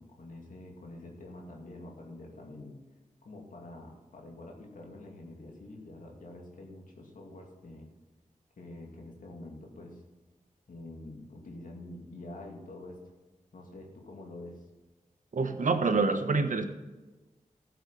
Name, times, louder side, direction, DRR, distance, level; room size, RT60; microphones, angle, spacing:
voice 1, 0.0-2.8 3.2-7.9 8.6-10.0 10.7-13.0 13.5-14.6, left 2 dB, 90° left, 0 dB, 2.5 m, -46 dB
voice 2, 15.3-16.7, right 4 dB, 75° right, 7 dB, 1.2 m, -26 dB
14.0 x 8.0 x 5.6 m, 1.2 s
wide cardioid pair, 90°, 13 cm